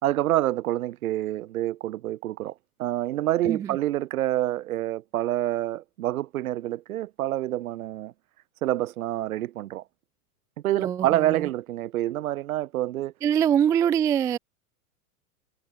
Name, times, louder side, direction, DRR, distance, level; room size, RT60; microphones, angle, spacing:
voice 1, 0.0-8.1 8.6-9.8 10.6-13.1, right 14 dB, 65° right, 2.6 m, -27 dB
voice 2, 3.4-3.8 10.8-11.5 13.2-14.4, right 9 dB, 10° right, 0.3 m, -24 dB
hypercardioid pair, 100°, 46 cm